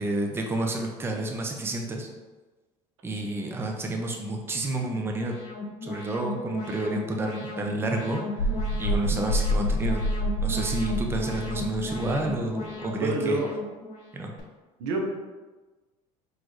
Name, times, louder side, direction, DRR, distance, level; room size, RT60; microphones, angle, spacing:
voice 1, 0.0-2.1 3.0-5.3 5.8-8.5 8.8-10.0 10.4-13.4 14.1-14.3, right 2 dB, 15° right, 2 dB, 0.5 m, -30 dB
Alarm, 4.5-14.4, left 2 dB, 60° left, 1.3 m, -36 dB
sound 1, 8.4-12.4, equal, 85° left, 0.5 m, -28 dB
voice 2, 13.0-13.5 14.8-15.0, right 2 dB, 90° right, 0 dB, 0.9 m, -27 dB
4.2 x 3.1 x 3.0 m, 1.2 s
supercardioid pair, 110°, 15 cm